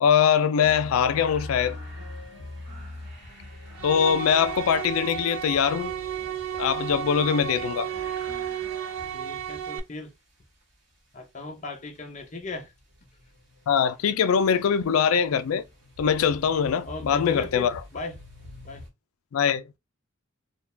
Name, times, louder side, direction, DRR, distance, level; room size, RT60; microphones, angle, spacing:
voice 1, 0.0-1.8 3.8-5.9 6.6-7.9 13.7-15.6 16.0-17.7 19.3-19.7, left 7 dB, 80° left, 0.3 m, -22 dB
sound 1, 0.6-9.7 11.7-18.9, left 1 dB, 55° right, 1.1 m, -44 dB
sound 2, 3.8-9.8, right 10 dB, 80° right, 0.5 m, -33 dB
voice 2, 9.1-10.1 11.1-12.7 16.9-18.2 18.6-18.8, left 2 dB, 35° left, 0.6 m, -38 dB
2.4 x 2.2 x 3.1 m
head